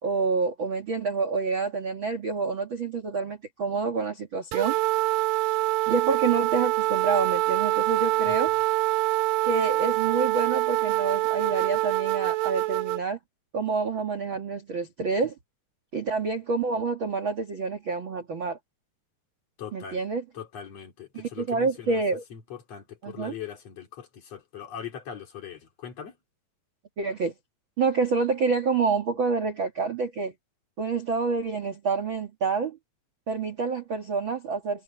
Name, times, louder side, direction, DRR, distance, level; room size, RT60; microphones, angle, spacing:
voice 1, 0.0-4.7 5.9-8.5 9.4-13.2 13.5-15.3 15.9-18.6 19.7-20.2 21.1-22.2 23.0-23.3 27.0-27.3 27.8-30.3 30.8-32.8 33.3-34.8, right 4 dB, 55° right, 1.3 m, -28 dB
sound 1, 4.5-13.0, right 18 dB, 85° right, 3.1 m, -25 dB
voice 2, 8.2-8.6 19.6-20.0 20.3-22.0 22.3-26.2, left 8 dB, 40° left, 3.1 m, -41 dB
omnidirectional pair, 5.4 m